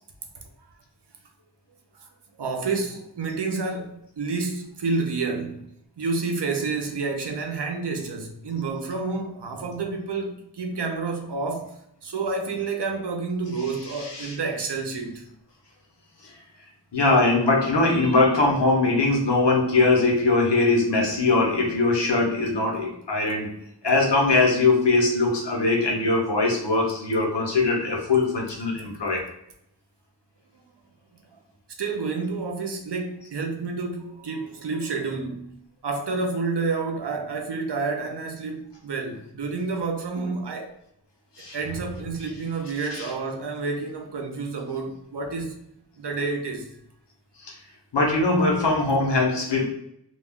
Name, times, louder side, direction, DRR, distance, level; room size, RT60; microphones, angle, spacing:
voice 1, 1.9-15.2 31.3-31.4 31.8-40.7 41.5-45.6 46.0-46.7, right 4 dB, 80° right, 0.6 m, -29 dB
voice 2, 13.9-14.4 16.2-16.3 16.9-23.5 23.8-29.3 41.4-41.6 42.9-43.1 47.4-47.6 47.9-49.7, left 3 dB, 85° left, 0.8 m, -21 dB
2.3 x 2.2 x 3.4 m
wide cardioid pair, 45°, 41 cm